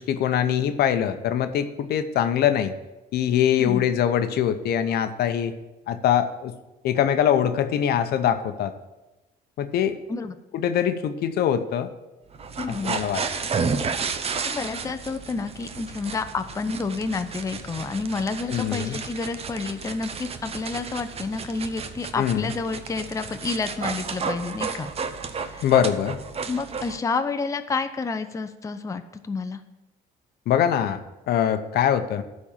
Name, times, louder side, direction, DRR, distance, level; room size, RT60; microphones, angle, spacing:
voice 1, 0.0-2.7 3.1-5.5 5.9-6.5 6.8-8.7 9.6-10.0 10.5-11.9 12.7-13.2 18.5-19.0 22.2-22.5 25.6-26.2 30.5-31.0 31.3-32.2, left 9 dB, 70° left, 10 dB, 0.8 m, -23 dB
sound 1, 12.3-27.0, right 5 dB, 35° right, 0.8 m, -32 dB
voice 2, 12.6-13.0 14.4-24.9 25.5-25.7 26.5-29.6, left 4 dB, 20° left, 8 dB, 0.6 m, -29 dB
11.5 x 4.3 x 7.3 m, 1.0 s
cardioid pair, 110°, 17 cm